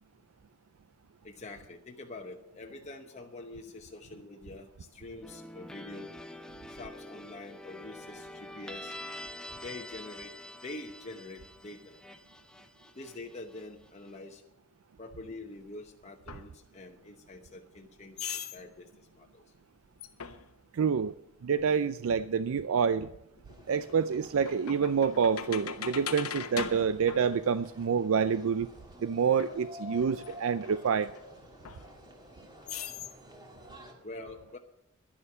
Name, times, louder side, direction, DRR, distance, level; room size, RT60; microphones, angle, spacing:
voice 1, 1.2-6.1 6.7-8.9 9.6-10.3 10.6-12.0 13.0-14.4 15.0-19.4 34.0-34.6, left 2 dB, 30° left, 1 dB, 1.0 m, -45 dB
sound 1, 5.2-14.1, left 1 dB, 5° left, 0.7 m, -46 dB
sound 2, 16.3-16.4 18.2-18.6 20.0-20.6 22.6-22.7 23.4-28.0 29.4-29.5 30.0-31.2 31.6-32.3 32.7-33.1, left 7 dB, 85° left, 1.0 m, -40 dB
voice 2, 20.7-21.1 21.4-23.1 23.7-28.7 29.0-31.1, right 6 dB, 65° right, 14 dB, 0.4 m, -27 dB
sound 3, 23.5-33.9, left 1 dB, 20° right, 2.2 m, -51 dB
11.0 x 11.0 x 6.8 m, 0.82 s
head